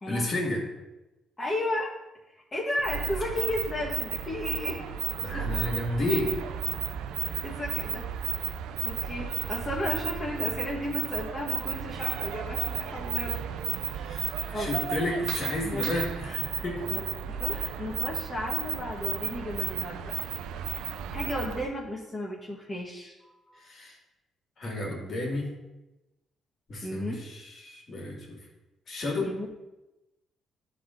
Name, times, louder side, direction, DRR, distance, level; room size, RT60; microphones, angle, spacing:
voice 1, 0.1-0.6 5.2-6.4 13.9-17.1 17.5-17.7 23.6-24.0 24.6-25.5 26.7-28.4 28.9-29.3, left 2 dB, 50° left, -1 dB, 2.1 m, -32 dB
voice 2, 1.4-1.9 2.5-4.8 7.1-7.2 7.4-8.0 8.8-13.4 14.5-14.7 15.6-15.9 16.9-20.1 21.1-23.6 26.8-27.2 29.2-29.5, left 1 dB, 25° left, -2 dB, 1.4 m, -34 dB
sound 1, 2.8-21.7, right 8 dB, 90° right, 0.4 m, -33 dB
11.0 x 3.6 x 3.8 m, 1.0 s
cardioid pair, 90°, 0 cm